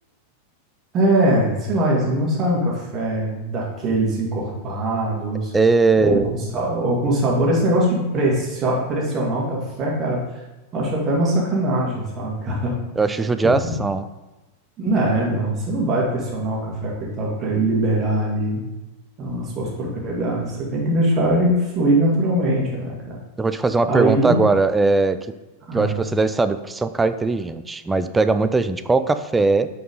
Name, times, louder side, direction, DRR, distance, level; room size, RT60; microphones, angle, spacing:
voice 1, 0.9-5.5 6.0-10.2 10.7-12.8 13.4-13.7 14.8-18.6 19.2-23.2 23.9-24.4 25.7-26.0, right 1 dB, 30° right, -3 dB, 2.1 m, -22 dB
voice 2, 5.5-6.3 13.0-14.0 23.4-25.2 25.7-29.7, right 3 dB, 10° right, 11 dB, 0.4 m, -19 dB
8.1 x 4.7 x 3.6 m, 1.1 s
figure-of-eight pair, 90°, 0 cm